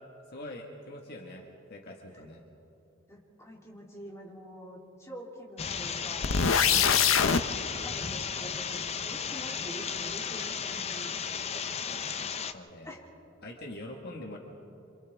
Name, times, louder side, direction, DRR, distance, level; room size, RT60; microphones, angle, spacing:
voice 1, 0.3-2.4 6.7-7.2 7.5-7.8 11.5-11.6 12.5-12.9 13.4-14.4, left 1 dB, 50° left, 1 dB, 1.6 m, -44 dB
voice 2, 3.1-6.4 7.8-11.1 12.8-13.0, equal, 15° left, -3 dB, 3.1 m, -46 dB
sound 1, 5.6-12.5, left 6 dB, 30° left, 0.6 m, -35 dB
sound 2, 6.2-7.4, left 7 dB, 75° left, 0.8 m, -23 dB
28.5 x 26.0 x 3.5 m, 2.8 s
head